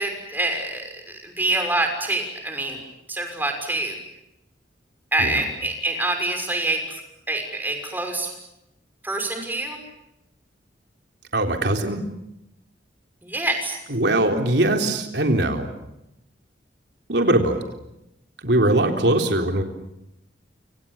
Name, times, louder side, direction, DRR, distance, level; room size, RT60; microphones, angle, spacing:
voice 1, 0.0-2.8 3.1-4.0 5.1-6.8 7.3-8.3 9.0-9.8 13.2-13.8, right 2 dB, 10° right, 4 dB, 6.2 m, -26 dB
voice 2, 11.3-12.0 13.9-15.7 17.1-17.6 18.4-19.6, right 1 dB, 65° right, 4 dB, 3.8 m, -21 dB
29.0 x 26.0 x 7.3 m, 0.85 s
head